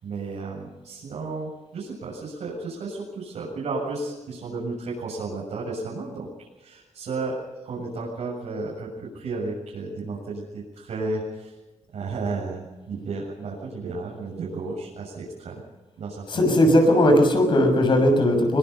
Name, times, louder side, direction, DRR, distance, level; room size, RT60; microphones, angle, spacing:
voice 1, 0.0-11.5 11.9-15.6 16.0-16.4, right 3 dB, 65° right, -4 dB, 7.3 m, -33 dB
voice 2, 16.3-18.6, left 1 dB, 40° left, 5 dB, 6.2 m, -18 dB
25.0 x 23.0 x 5.6 m, 1.1 s
wide cardioid pair, 175°, 12 cm